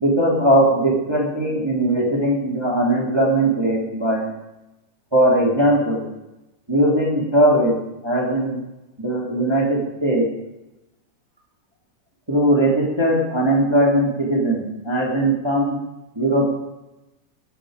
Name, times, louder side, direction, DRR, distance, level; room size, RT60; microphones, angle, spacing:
voice 1, 0.0-4.3 5.1-6.1 6.7-7.7 8.0-8.6 9.0-10.2 12.3-15.8 16.1-16.5, right 1 dB, 10° right, -3 dB, 2.6 m, -19 dB
21.0 x 8.8 x 5.1 m, 0.95 s
omnidirectional pair, 3.6 m